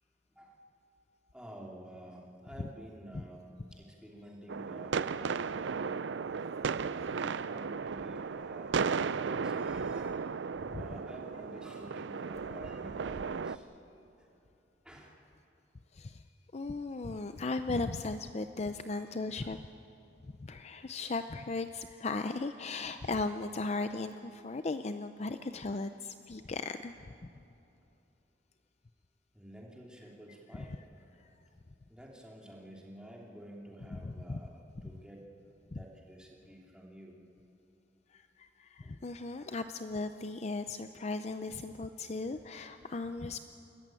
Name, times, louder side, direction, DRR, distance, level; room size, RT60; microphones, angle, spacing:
voice 1, 1.3-5.2 5.5-6.0 6.9-13.7 14.2-14.3 14.8-15.1 18.9-19.5 29.3-30.8 31.9-35.3 35.7-37.2 38.8-39.0, right 1 dB, 5° right, -2 dB, 2.9 m, -51 dB
sound 1, 4.5-13.6, right 5 dB, 75° right, 0.5 m, -35 dB
voice 2, 15.9-16.2 16.5-19.6 20.4-26.9 33.9-34.4 35.7-35.8 38.1-43.4, left 3 dB, 35° left, 9 dB, 0.5 m, -37 dB
29.5 x 14.0 x 9.0 m, 2.8 s
head